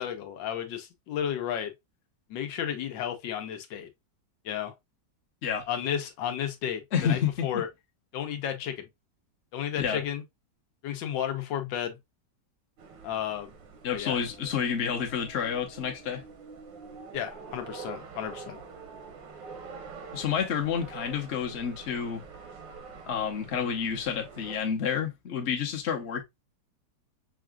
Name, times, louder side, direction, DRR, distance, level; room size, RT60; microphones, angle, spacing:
voice 1, 0.0-1.7 2.3-3.9 4.4-4.7 5.7-7.7 8.1-8.8 9.5-10.2 10.8-12.0 13.0-13.5 13.9-14.2 17.1-18.6, left 9 dB, 85° left, 1.5 m, -33 dB
voice 2, 6.9-7.5 9.7-10.0 13.8-16.2 20.1-22.2 23.1-26.2, left 7 dB, 45° left, 1.1 m, -29 dB
sound 1, 12.8-24.6, right 5 dB, 85° right, 1.7 m, -46 dB
5.8 x 2.5 x 2.2 m
omnidirectional pair, 1.9 m